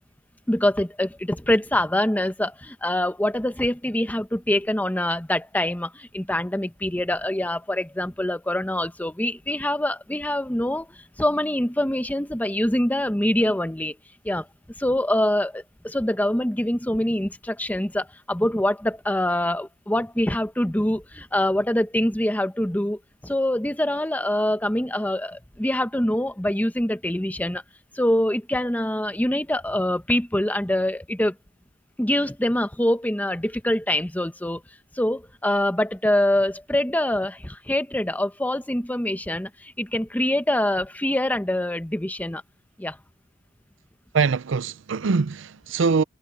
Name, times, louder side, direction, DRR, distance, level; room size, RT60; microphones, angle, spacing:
voice 1, 0.5-10.9 11.2-14.0 14.2-14.5 14.8-27.6 27.9-31.3 32.0-34.6 35.0-42.4 42.8-43.0, left 1 dB, 10° left, 0.9 m, -24 dB
voice 2, 44.1-46.0, right 5 dB, 70° right, 0.5 m, -23 dB
head